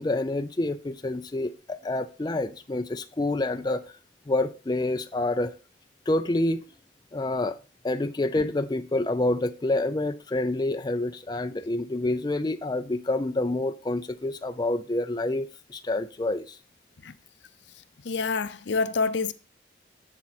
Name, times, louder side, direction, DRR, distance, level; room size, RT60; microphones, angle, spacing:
voice 1, 0.0-3.8 4.3-5.5 6.1-6.6 7.1-7.6 7.8-16.5, left 2 dB, 20° left, 0.4 m, -27 dB
voice 2, 18.0-19.3, left 4 dB, 65° left, 0.6 m, -27 dB
7.5 x 7.3 x 4.1 m
head